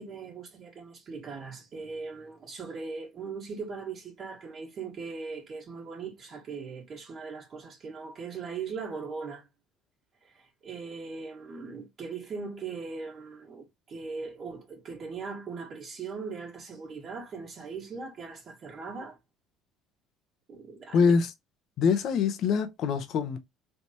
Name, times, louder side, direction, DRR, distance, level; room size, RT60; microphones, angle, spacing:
voice 1, 0.0-9.5 10.2-19.2 20.5-21.1, right 5 dB, 45° right, 1.4 m, -39 dB
voice 2, 20.9-21.3 21.8-23.4, left 6 dB, 60° left, 0.8 m, -24 dB
3.4 x 2.9 x 2.8 m
supercardioid pair, 95°, 0 cm